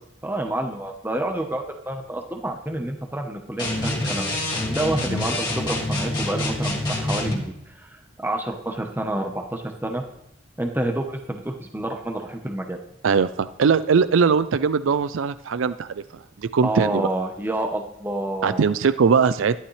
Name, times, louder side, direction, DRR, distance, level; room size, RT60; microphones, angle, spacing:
voice 1, 0.2-10.0 10.6-12.8 16.6-18.6, right 1 dB, 10° right, 3 dB, 0.9 m, -29 dB
sound 1, 3.6-7.4, left 1 dB, 20° left, 2.6 m, -26 dB
voice 2, 13.0-16.0 16.5-17.1 18.4-19.6, right 5 dB, 75° right, 14 dB, 0.4 m, -20 dB
14.0 x 11.5 x 3.3 m, 0.81 s
head